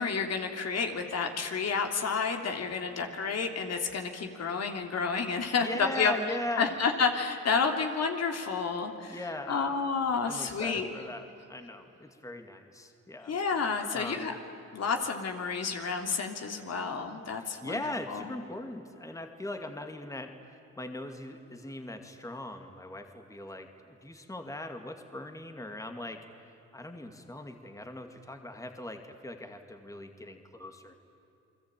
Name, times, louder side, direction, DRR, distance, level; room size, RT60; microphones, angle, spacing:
voice 1, 0.0-6.1 6.6-9.2 9.5-10.9 13.3-14.3 14.7-17.8 18.1-18.3, left 5 dB, 55° left, 4 dB, 3.0 m, -30 dB
voice 2, 5.6-6.7 9.1-9.8 10.2-13.4 13.9-14.3 17.4-26.2 26.7-30.9, left 1 dB, 10° left, 6 dB, 2.3 m, -40 dB
30.0 x 22.0 x 9.0 m, 2.9 s
cardioid pair, 90°, 30 cm